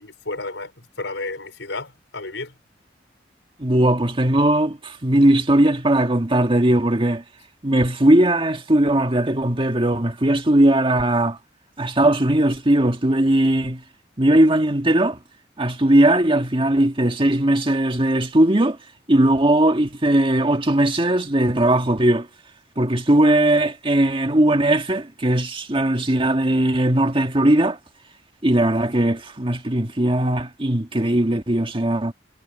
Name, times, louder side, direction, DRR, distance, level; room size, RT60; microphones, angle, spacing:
voice 1, 0.0-2.5, left 2 dB, 85° left, 5.5 m, -32 dB
voice 2, 3.6-7.2 7.6-11.4 11.8-13.8 14.2-15.2 15.6-18.8 19.1-22.3 22.8-27.8 28.4-32.1, right 1 dB, 30° right, 1.8 m, -19 dB
head